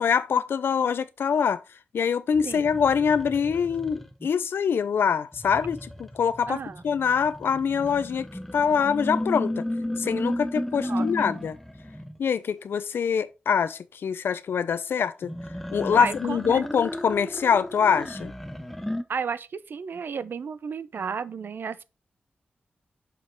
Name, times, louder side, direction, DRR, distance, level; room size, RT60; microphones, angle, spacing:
voice 1, 0.0-1.6 1.9-6.6 6.8-8.3 8.5-9.5 10.0-11.6 12.2-15.3 15.7-18.3, left 7 dB, 85° left, 0.6 m, -24 dB
sound 1, 2.3-4.3 5.3-12.2 15.2-19.0, left 1 dB, 5° left, 0.8 m, -34 dB
voice 2, 6.5-6.8 10.8-11.1 15.9-16.6 19.1-21.8, right 6 dB, 70° right, 0.6 m, -33 dB
6.6 x 4.3 x 4.4 m
wide cardioid pair, 85°, 4 cm